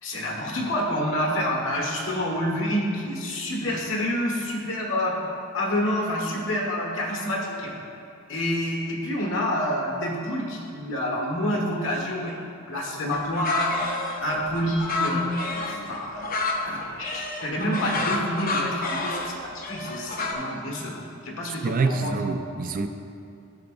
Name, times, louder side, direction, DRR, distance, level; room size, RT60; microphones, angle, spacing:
voice 1, 0.0-5.3 5.5-7.7 8.3-12.4 12.7-13.9 14.2-15.2 15.5-16.3 16.6-22.1, equal, 65° left, -1 dB, 1.4 m, -28 dB
sound 1, 13.1-20.3, left 3 dB, 40° left, 0.7 m, -29 dB
voice 2, 21.6-22.9, right 4 dB, 40° right, 7 dB, 0.3 m, -25 dB
13.5 x 6.1 x 2.6 m, 2.6 s
head